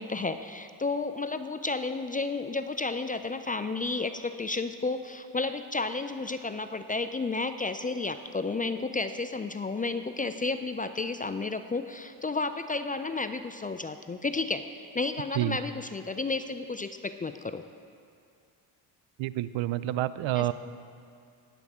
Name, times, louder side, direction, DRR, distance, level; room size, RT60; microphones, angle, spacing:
voice 1, 0.0-14.6 14.9-17.6 20.4-20.5, left 3 dB, 20° left, 10 dB, 0.3 m, -32 dB
voice 2, 19.2-20.5, right 15 dB, 70° right, 15 dB, 0.6 m, -28 dB
16.0 x 9.8 x 3.6 m, 2.3 s
supercardioid pair, 70°, 48 cm